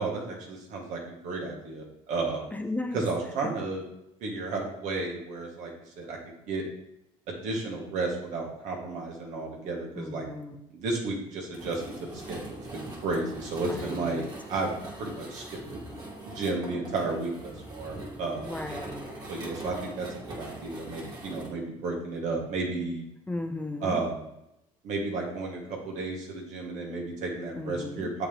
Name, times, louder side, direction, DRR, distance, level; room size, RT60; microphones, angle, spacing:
voice 1, 0.0-2.5 2.9-3.8 4.2-5.7 6.0-6.6 7.3-10.3 10.7-14.7 15.0-15.4 15.7-15.8 16.3-18.5 19.3-23.1 23.8-24.2 24.8-28.3, right 3 dB, 70° right, 0 dB, 1.9 m, -33 dB
voice 2, 2.5-3.0 10.0-10.5 13.7-14.3 18.4-19.1 23.3-24.0 27.6-28.1, left 2 dB, 10° left, 3 dB, 0.8 m, -35 dB
sound 1, 11.5-21.5, right 1 dB, 35° right, 2.3 m, -42 dB
7.3 x 4.9 x 3.5 m, 0.83 s
supercardioid pair, 95°, 13 cm